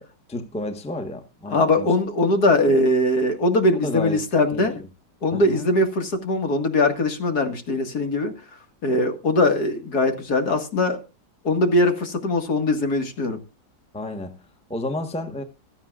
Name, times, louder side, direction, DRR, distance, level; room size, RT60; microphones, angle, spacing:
voice 1, 0.0-1.9 3.8-4.2 4.5-4.8 5.3-5.7 13.9-15.4, left 1 dB, 5° left, 1.2 m, -32 dB
voice 2, 1.5-4.8 5.2-8.3 8.8-11.0 11.4-13.4, left 2 dB, 60° left, 2.5 m, -21 dB
16.0 x 13.5 x 2.5 m
omnidirectional pair, 1.9 m